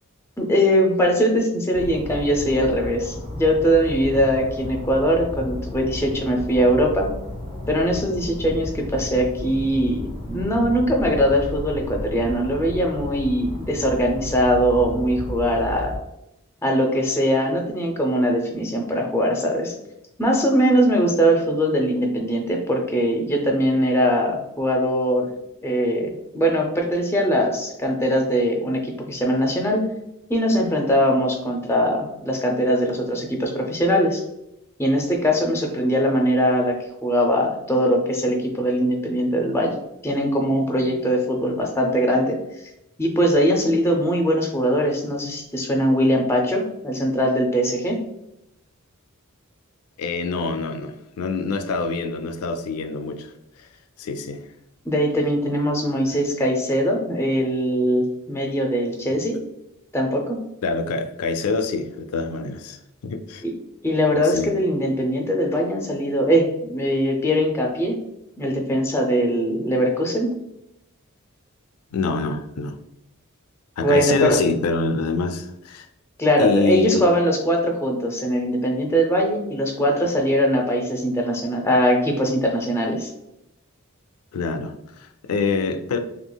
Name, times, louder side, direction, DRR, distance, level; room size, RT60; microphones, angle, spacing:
voice 1, 0.4-7.1 7.7-16.0 16.6-19.8 20.2-25.3 25.6-29.9 30.3-34.2 34.8-39.7 40.0-42.4 43.0-48.0 54.9-59.4 59.9-60.4 63.4-63.5 63.8-68.0 68.4-70.3 73.8-74.4 76.2-83.1, equal, 10° left, 0.4 m, -21 dB
sound 1, 1.7-16.0, left 1 dB, 25° right, 0.6 m, -33 dB
voice 2, 50.0-53.3 54.0-54.4 60.6-62.8 63.0-63.4 64.1-64.5 71.9-72.8 73.8-75.9 76.4-77.0 84.3-84.8 85.2-86.0, left 4 dB, 80° left, 0.4 m, -25 dB
3.7 x 2.8 x 2.2 m
head